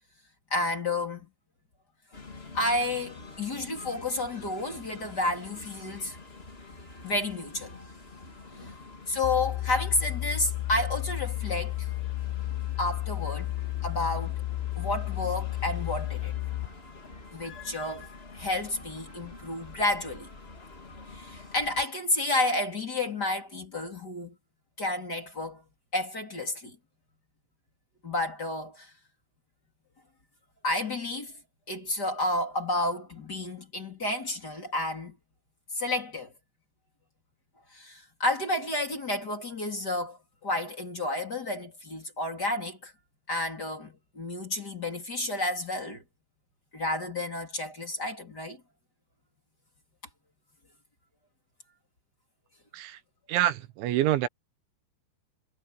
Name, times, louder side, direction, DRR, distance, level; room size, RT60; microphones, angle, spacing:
voice 1, 0.5-1.3 2.5-6.2 7.0-7.7 8.5-8.7 9.1-11.9 12.8-14.4 14.8-16.3 17.3-18.1 18.3-20.3 21.1-24.4 24.8-25.6 25.9-26.8 28.0-28.9 30.6-31.3 31.7-35.2 35.7-36.3 37.7-42.9 43.3-46.0 46.7-48.6, left 2 dB, 20° left, 3.4 m, -31 dB
sound 1, 2.1-21.9, left 3 dB, 65° left, 0.6 m, -47 dB
sound 2, 9.2-16.7, left 16 dB, 80° left, 2.7 m, -32 dB
voice 2, 53.3-54.3, right 13 dB, 75° right, 3.2 m, -26 dB
omnidirectional pair, 5.9 m